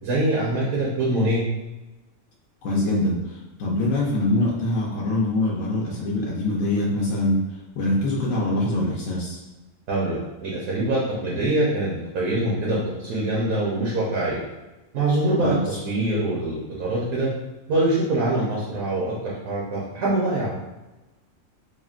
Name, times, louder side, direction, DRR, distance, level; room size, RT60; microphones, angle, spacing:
voice 1, 0.0-1.4 9.9-14.4 14.9-17.3 17.7-20.5, right 1 dB, 70° right, -5 dB, 1.0 m, -24 dB
voice 2, 2.6-3.2 3.6-7.4 7.8-9.4 15.4-15.5, left 1 dB, 70° left, -4 dB, 0.9 m, -23 dB
3.6 x 2.1 x 2.4 m, 1.1 s
omnidirectional pair, 1.5 m